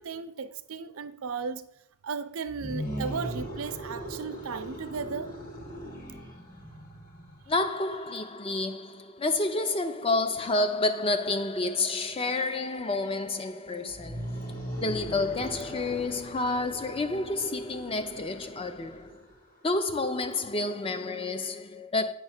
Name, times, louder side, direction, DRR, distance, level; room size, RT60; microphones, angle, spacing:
voice 1, 0.0-1.7 2.0-5.3, right 5 dB, 70° right, 0.5 m, -35 dB
sound 1, 2.5-7.6 13.9-19.6, equal, 40° left, 1.9 m, -39 dB
voice 2, 7.5-19.2 19.6-22.1, left 2 dB, 25° left, 0.4 m, -29 dB
8.8 x 3.2 x 6.4 m
head